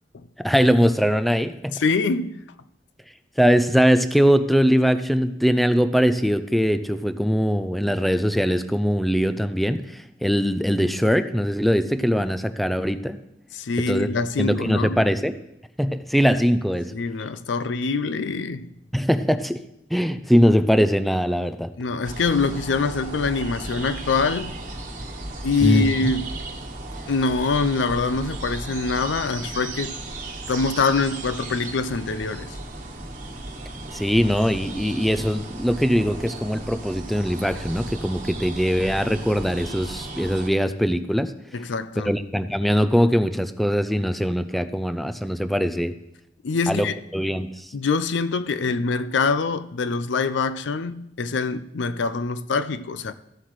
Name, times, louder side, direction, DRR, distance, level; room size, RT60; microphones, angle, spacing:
voice 1, 0.4-1.8 3.4-13.2 13.8-14.1 14.4-15.3 15.8-16.9 18.9-21.7 25.6-26.1 33.9-41.6 42.0-46.0 46.7-47.7, equal, ahead, 0.4 m, -21 dB
voice 2, 1.8-2.4 13.6-15.0 16.9-18.7 21.8-24.5 25.4-26.3 27.1-29.9 30.5-32.6 41.5-42.1 46.4-46.9 47.7-53.1, left 4 dB, 75° left, 0.5 m, -24 dB
sound 1, 22.0-40.5, right 2 dB, 45° right, 1.3 m, -35 dB
14.5 x 7.6 x 3.1 m
head